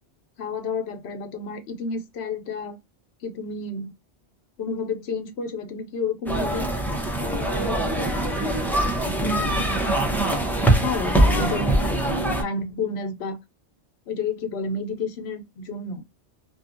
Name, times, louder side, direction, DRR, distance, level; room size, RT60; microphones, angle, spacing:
voice 1, 0.4-2.8 3.2-3.9 4.6-6.7 7.2-8.1 9.2-10.0 10.8-12.0 12.4-13.4 14.1-16.0, left 4 dB, 70° left, 0.9 m, -31 dB
sound 1, 6.3-12.4, right 1 dB, 5° left, 0.3 m, -23 dB
2.7 x 2.4 x 2.4 m
omnidirectional pair, 1.2 m